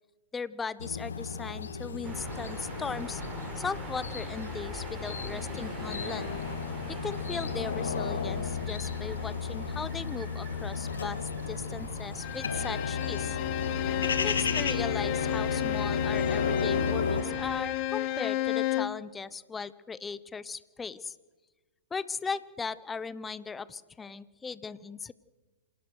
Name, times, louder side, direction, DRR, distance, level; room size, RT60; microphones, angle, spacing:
voice 1, 0.3-3.2 3.6-6.4 7.0-11.2 11.5-13.4 14.2-21.2 21.9-25.1, left 5 dB, 15° left, 18 dB, 0.9 m, -38 dB
sound 1, 0.8-17.2, left 5 dB, 80° left, 2.2 m, -33 dB
sound 2, 2.0-17.6, right 2 dB, 20° right, 8.0 m, -43 dB
Bowed string instrument, 12.2-19.0, left 15 dB, 40° left, 1.3 m, -33 dB
27.0 x 18.0 x 6.5 m, 1.3 s
hypercardioid pair, 115°, 0 cm